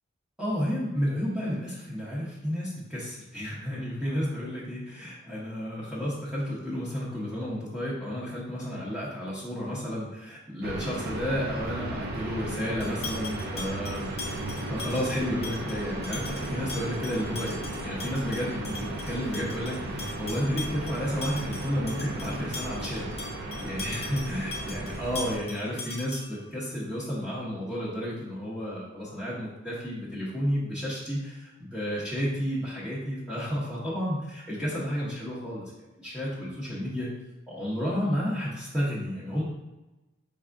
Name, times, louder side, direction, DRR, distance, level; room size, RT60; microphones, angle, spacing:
voice 1, 0.4-14.3 14.7-23.0 23.6-35.7 36.0-37.1 37.5-39.4, equal, ahead, -10 dB, 0.7 m, -32 dB
sound 1, 10.6-25.4, right 1 dB, 50° right, 0.6 m, -35 dB
sound 2, 12.8-26.5, left 3 dB, 30° left, 0.6 m, -41 dB
4.8 x 3.4 x 2.4 m, 1.0 s
head